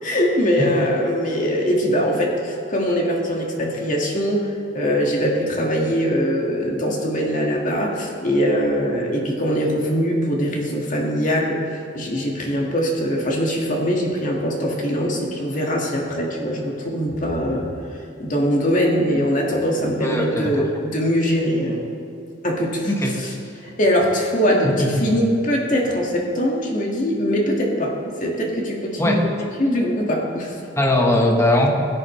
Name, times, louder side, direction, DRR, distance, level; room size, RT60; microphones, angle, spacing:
voice 1, 0.0-17.7 18.2-21.8 22.4-22.9 23.6-27.9 28.2-30.6, equal, 45° left, -1 dB, 2.0 m, -22 dB
voice 2, 20.0-20.6 22.9-23.1 24.6-25.1 29.0-29.2 30.8-31.7, left 1 dB, 15° left, 1 dB, 1.3 m, -20 dB
15.5 x 10.5 x 3.3 m, 2.7 s
head